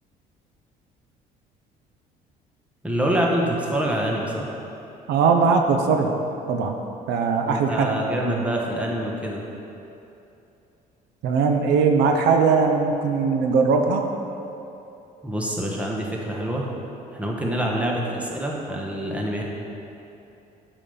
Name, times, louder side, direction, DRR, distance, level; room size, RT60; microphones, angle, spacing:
voice 1, 2.8-4.5 7.5-9.4 15.2-16.7 17.1-19.4, right 1 dB, 10° right, -2 dB, 1.3 m, -26 dB
voice 2, 5.1-6.2 6.5-6.8 7.1-7.9 11.2-14.1, right 5 dB, 85° right, 4 dB, 0.7 m, -20 dB
8.6 x 5.3 x 5.6 m, 2.9 s
cardioid pair, 110°, 17 cm